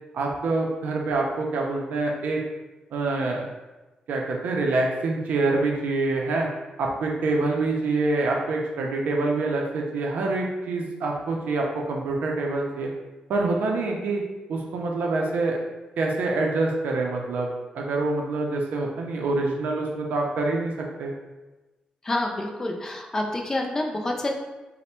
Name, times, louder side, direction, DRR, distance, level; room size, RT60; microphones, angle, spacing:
voice 1, 0.1-2.4 2.9-3.4 4.1-6.5 6.8-12.9 13.3-14.2 14.5-15.6 16.0-17.5 17.7-21.1, right 3 dB, 85° right, 0 dB, 0.5 m, -26 dB
voice 2, 22.0-24.3, left 1 dB, 20° left, 1 dB, 0.4 m, -28 dB
3.3 x 2.1 x 4.2 m, 1.1 s
wide cardioid pair, 165°, 3 cm